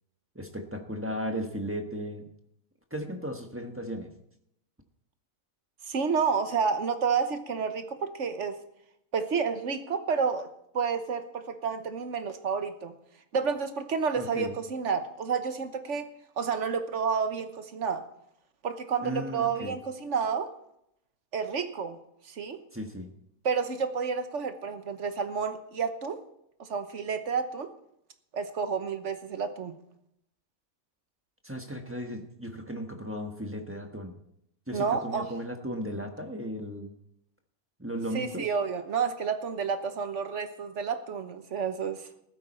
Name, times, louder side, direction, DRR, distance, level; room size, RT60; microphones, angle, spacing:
voice 1, 0.3-2.3 2.9-4.1 14.2-14.5 19.0-19.8 22.7-23.1 31.4-34.2 34.7-36.9 37.8-38.5, equal, 10° right, 4 dB, 1.4 m, -35 dB
voice 2, 5.9-8.6 9.1-10.5 10.7-12.9 13.3-16.1 16.4-18.1 18.6-20.5 21.3-22.0 22.3-22.6 23.4-26.2 26.6-27.7 28.3-29.8 34.7-35.3 38.1-42.1, right 6 dB, 60° right, 9 dB, 1.3 m, -30 dB
14.5 x 12.5 x 4.4 m, 0.77 s
omnidirectional pair, 1.4 m